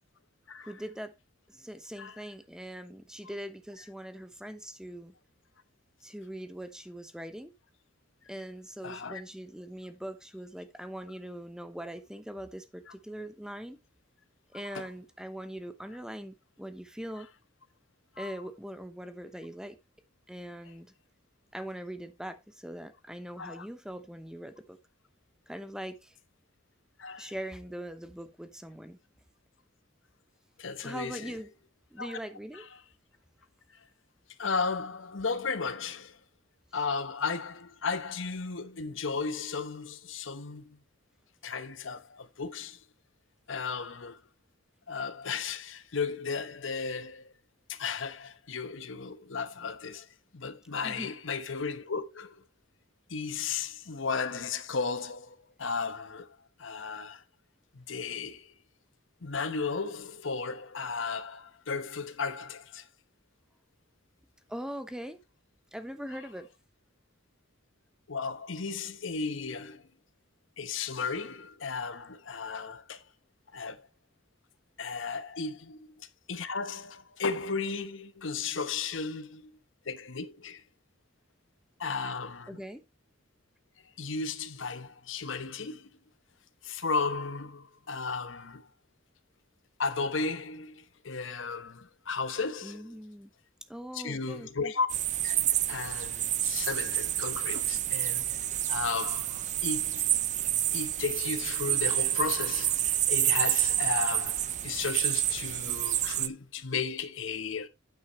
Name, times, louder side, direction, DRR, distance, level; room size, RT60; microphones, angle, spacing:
voice 1, 0.6-1.1 1.5-5.1 6.0-7.5 8.3-13.8 14.5-17.3 18.2-19.8 20.3-20.9 21.5-24.8 25.5-26.2 27.2-29.0 30.8-31.5 31.9-32.7 50.8-51.1 64.5-65.2 65.7-66.5 82.5-82.8 92.6-93.3 93.7-94.7, equal, 5° right, 0.9 m, -41 dB
voice 2, 8.8-9.2 12.9-13.0 14.5-14.9 18.2-18.3 23.4-23.7 27.0-27.3 30.6-31.4 32.0-32.2 32.5-32.6 34.4-36.2 36.7-40.8 41.4-42.8 43.5-44.2 44.9-47.3 47.7-50.1 50.3-52.4 53.1-56.3 56.6-57.2 57.7-58.5 59.2-62.9 68.1-69.9 70.6-73.0 73.5-73.9 74.8-79.6 79.8-80.6 81.8-82.6 84.0-85.9 86.6-88.7 89.8-92.8 93.9-94.9 95.2-98.4 98.7-100.2 100.7-107.7, left 4 dB, 75° left, 1.1 m, -35 dB
sound 1, 94.9-106.3, right 12 dB, 40° right, 0.5 m, -29 dB
9.1 x 8.1 x 3.1 m
head